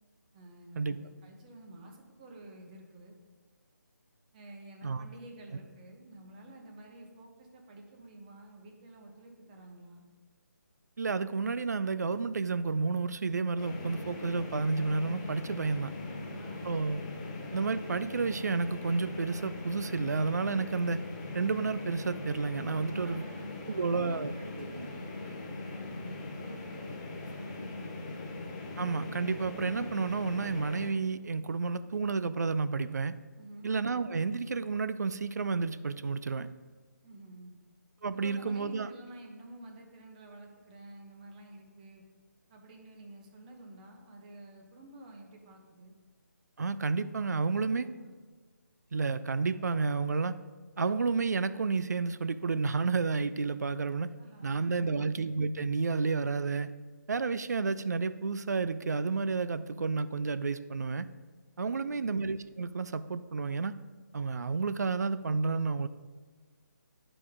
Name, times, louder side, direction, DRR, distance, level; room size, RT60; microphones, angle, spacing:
voice 1, 0.3-3.1 4.3-10.0 15.8-16.9 22.9-28.2 33.4-33.8 37.0-37.6 38.1-42.0 42.5-45.9 47.4-48.1 54.2-55.0 61.6-62.1, right 1 dB, 25° right, 1 dB, 1.0 m, -50 dB
voice 2, 11.0-15.9 16.6-17.0 17.5-21.0 21.3-23.2 23.7-24.3 28.8-33.2 33.6-36.5 38.0-38.9 46.6-47.9 48.9-50.4 50.8-54.1 54.4-56.7 57.1-61.1 61.6-63.7 64.1-65.9, right 4 dB, 65° right, 13 dB, 0.4 m, -31 dB
sound 1, 13.6-30.9, left 2 dB, 25° left, 0.9 m, -41 dB
11.0 x 4.9 x 3.6 m, 1.4 s
figure-of-eight pair, 150°, 10 cm